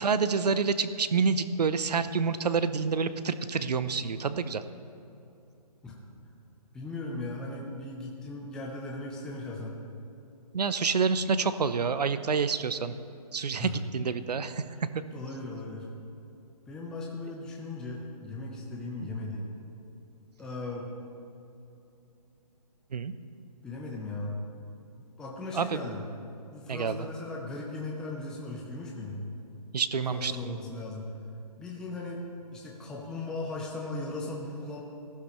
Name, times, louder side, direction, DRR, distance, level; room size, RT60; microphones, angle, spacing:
voice 1, 0.0-4.6 10.5-12.9 13.3-14.6 19.0-19.1 22.9-23.1 25.5-25.8 26.7-27.1 29.7-30.6, right 5 dB, 75° right, 12 dB, 0.8 m, -28 dB
voice 2, 6.7-9.8 13.6-13.8 15.1-15.9 16.7-19.5 20.4-20.9 23.6-24.4 25.2-26.0 26.5-29.3 30.1-31.1 31.6-32.2 32.5-34.8, left 2 dB, 5° left, -3 dB, 0.6 m, -37 dB
19.0 x 12.0 x 3.1 m, 2.7 s
hypercardioid pair, 155°, 21 cm